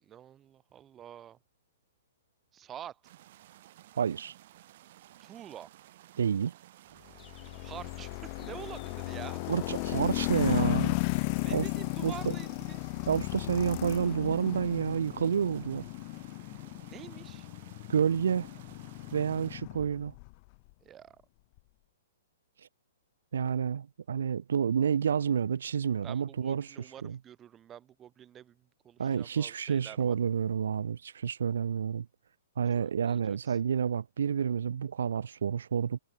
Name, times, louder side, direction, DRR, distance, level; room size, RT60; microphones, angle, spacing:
voice 1, 0.0-1.4 2.5-3.0 5.2-5.7 7.6-8.1 8.4-9.4 11.4-12.8 16.9-17.5 20.8-21.2 26.0-30.2 32.8-33.6, right 10 dB, 15° right, 0.6 m, -47 dB
sound 1, 3.0-19.6, right 14 dB, 50° right, 4.0 m, -55 dB
voice 2, 4.0-4.3 6.2-6.5 9.5-11.0 11.5-11.7 12.0-12.3 13.1-15.8 17.9-18.5 19.1-20.1 23.3-26.7 27.0-27.2 29.0-32.1 32.6-36.0, right 7 dB, 80° right, 0.4 m, -29 dB
sound 2, 7.1-14.6, left 10 dB, 15° left, 2.2 m, -66 dB
sound 3, 7.2-20.3, left 31 dB, 35° left, 0.3 m, -35 dB
hypercardioid pair, 155°, 0 cm